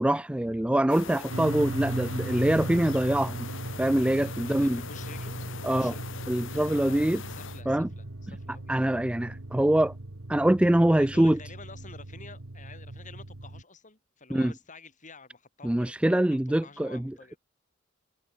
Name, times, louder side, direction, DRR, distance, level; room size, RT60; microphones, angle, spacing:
voice 1, 0.0-3.5 3.8-4.8 5.6-5.9 6.3-7.2 7.7-7.9 8.7-9.9 10.3-11.4 14.3-14.5 15.6-17.3, right 1 dB, 5° right, 0.3 m, -24 dB
sound 1, 0.9-7.6, left 6 dB, 65° left, 1.4 m, -42 dB
sound 2, 1.3-13.6, right 2 dB, 85° right, 1.6 m, -38 dB
voice 2, 4.4-6.2 6.6-8.8 10.9-17.4, left 4 dB, 40° left, 5.6 m, -50 dB
head